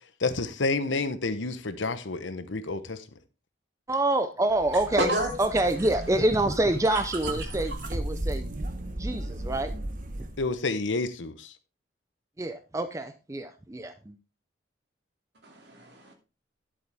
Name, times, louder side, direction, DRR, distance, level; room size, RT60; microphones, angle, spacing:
voice 1, 0.2-3.0 10.4-11.5, left 3 dB, 85° left, 1.0 m, -29 dB
voice 2, 3.9-5.1 5.4-8.5 9.0-9.7 12.4-14.1, right 1 dB, 15° right, 0.5 m, -26 dB
sound 1, 4.5-10.5, right 1 dB, 45° right, 1.1 m, -36 dB
voice 3, 5.0-5.3 6.9-7.9 15.4-16.1, right 1 dB, 65° right, 2.6 m, -30 dB
11.0 x 7.7 x 3.4 m
head